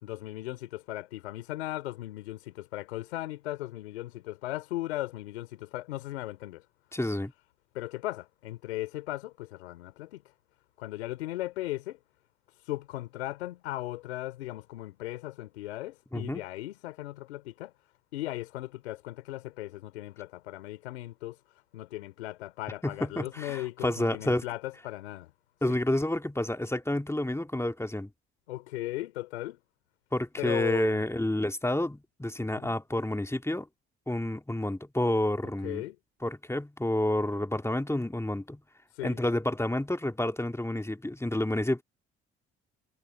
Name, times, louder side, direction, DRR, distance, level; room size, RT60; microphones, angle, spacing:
voice 1, 0.0-6.6 7.7-10.2 10.8-12.0 12.6-17.7 18.1-21.4 21.7-25.3 25.7-25.8 28.5-29.6 30.4-31.0 32.6-32.7 35.6-35.9 38.9-39.2, left 16 dB, 90° left, 3.4 m, -37 dB
voice 2, 6.9-7.3 16.1-16.4 22.8-24.4 25.6-28.1 30.1-33.7 34.1-35.8 36.2-38.6 39.0-41.8, left 1 dB, 10° left, 2.2 m, -29 dB
hypercardioid pair, 50°, 32 cm